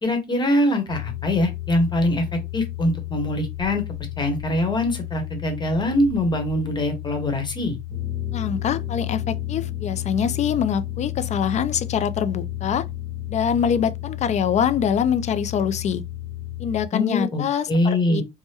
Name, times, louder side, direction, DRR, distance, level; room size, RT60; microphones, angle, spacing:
voice 1, 0.0-3.8 4.2-7.8 16.9-18.2, left 1 dB, 25° left, 1.0 m, -23 dB
sound 1, 0.9-16.9, left 14 dB, 45° right, 1.4 m, -32 dB
voice 2, 8.3-12.9 13.3-16.0 16.6-18.2, left 8 dB, 45° left, 0.4 m, -24 dB
3.4 x 2.1 x 2.8 m
cardioid pair, 110°, 17 cm